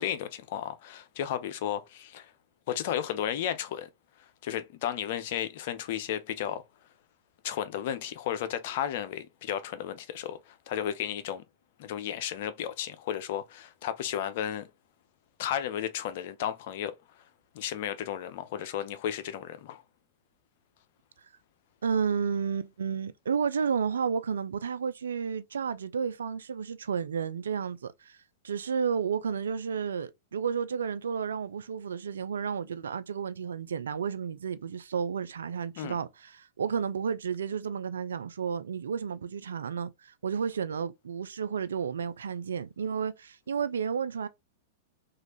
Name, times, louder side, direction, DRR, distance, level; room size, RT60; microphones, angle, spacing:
voice 1, 0.0-2.3 2.7-3.9 4.4-6.6 7.4-11.4 11.8-14.7 15.4-17.0 17.5-19.8 35.8-36.0, left 10 dB, 55° left, 0.5 m, -33 dB
voice 2, 21.8-28.2 28.4-44.3, right 6 dB, 80° right, 0.3 m, -32 dB
3.1 x 2.5 x 2.9 m
hypercardioid pair, 105°, 0 cm